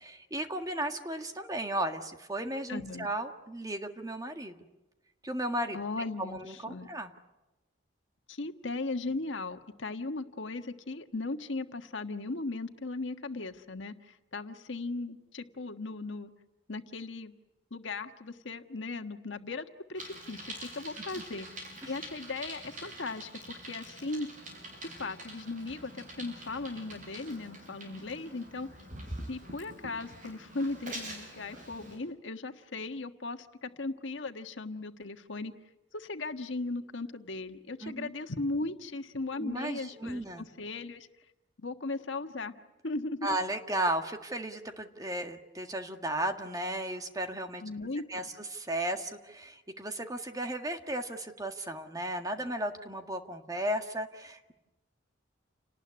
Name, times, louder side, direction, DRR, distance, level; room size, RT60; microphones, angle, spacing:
voice 1, 0.0-4.6 5.2-5.8 6.2-7.1 21.1-21.2 21.8-21.9 37.8-38.1 39.4-40.4 43.2-47.6 48.1-54.5, right 1 dB, 20° right, 6 dB, 1.7 m, -35 dB
voice 2, 2.7-3.1 5.7-6.9 8.3-16.3 16.7-17.3 17.7-19.6 19.9-21.5 21.9-24.3 24.8-28.7 29.3-35.5 35.9-41.1 41.6-42.5 42.8-43.4 47.6-48.2, left 3 dB, 75° left, 7 dB, 1.5 m, -37 dB
Bicycle, 20.0-32.0, right 1 dB, 45° right, 7.6 m, -45 dB
29.5 x 19.0 x 9.8 m, 1.0 s
head